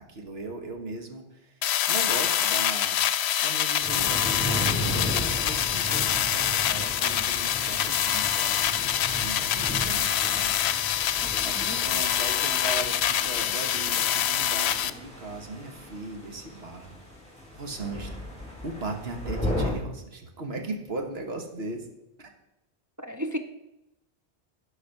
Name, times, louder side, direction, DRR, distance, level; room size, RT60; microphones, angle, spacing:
voice 1, 0.0-1.6 1.9-3.0 3.4-10.5 11.4-16.9 17.5-18.2 18.6-21.9 22.2-22.3, right 2 dB, 70° right, 4 dB, 1.5 m, -38 dB
sound 1, 1.6-14.9, left 10 dB, 80° left, 0.8 m, -25 dB
sound 2, 3.8-19.7, equal, 5° left, 3.5 m, -36 dB
voice 2, 11.2-12.1 23.0-23.4, equal, 25° right, 5 dB, 0.4 m, -35 dB
11.5 x 4.8 x 6.5 m, 0.89 s
omnidirectional pair, 1.1 m